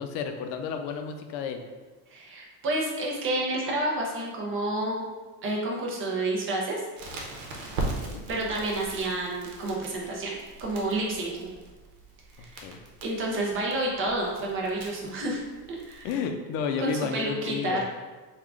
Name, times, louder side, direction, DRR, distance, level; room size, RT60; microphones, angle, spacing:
voice 1, 0.0-1.6 7.9-8.2 12.4-12.8 16.0-17.8, left 6 dB, 85° left, 6 dB, 0.6 m, -32 dB
voice 2, 2.1-5.0 5.4-6.8 8.3-11.5 12.4-12.6 13.0-15.4 15.7-16.1 16.8-17.8, right 2 dB, 30° right, -2 dB, 0.6 m, -29 dB
Crackle, 7.0-16.1, right 2 dB, 90° right, 0.9 m, -40 dB
3.6 x 2.4 x 3.5 m, 1.3 s
cardioid pair, 170°, 46 cm